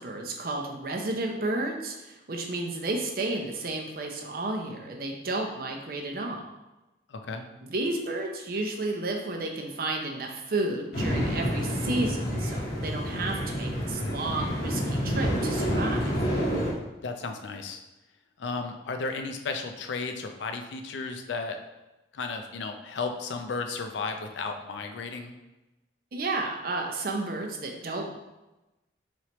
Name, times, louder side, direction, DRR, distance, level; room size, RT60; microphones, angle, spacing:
voice 1, 0.0-6.4 7.6-16.1 26.1-28.2, right 2 dB, 50° right, 1 dB, 0.6 m, -32 dB
voice 2, 7.1-7.4 17.0-17.8 18.4-21.6 22.1-25.3, left 4 dB, 80° left, 5 dB, 0.4 m, -34 dB
sound 1, 10.9-16.7, equal, 60° left, 1.0 m, -28 dB
4.3 x 3.1 x 2.9 m, 1.0 s
head